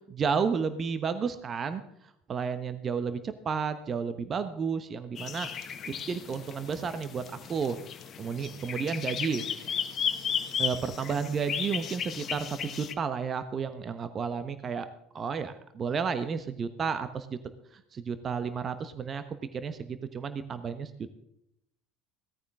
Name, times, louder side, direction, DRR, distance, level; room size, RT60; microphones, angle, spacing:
voice 1, 0.1-1.8 2.3-5.5 5.9-7.2 7.5-7.8 8.2-9.5 10.6-14.9 15.1-17.3 17.7-19.2 19.5-21.1, right 6 dB, 35° right, 11 dB, 1.1 m, -32 dB
sound 1, 5.2-12.9, left 8 dB, 40° left, 1.4 m, -35 dB
17.5 x 14.0 x 3.7 m, 0.77 s
figure-of-eight pair, 65°, 0 cm